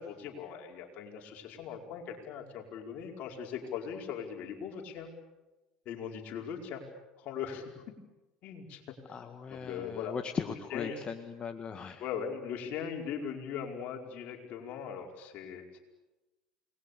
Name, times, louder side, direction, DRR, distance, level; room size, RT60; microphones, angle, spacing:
voice 1, 0.0-5.1 5.8-6.8 7.2-7.7 8.4-8.8 9.5-10.1 10.7-11.0 12.0-15.8, left 7 dB, 60° left, 2 dB, 5.1 m, -39 dB
voice 2, 9.1-12.0, left 6 dB, 35° left, 7 dB, 1.8 m, -38 dB
29.0 x 21.0 x 8.5 m, 1.1 s
hypercardioid pair, 75°, 3 cm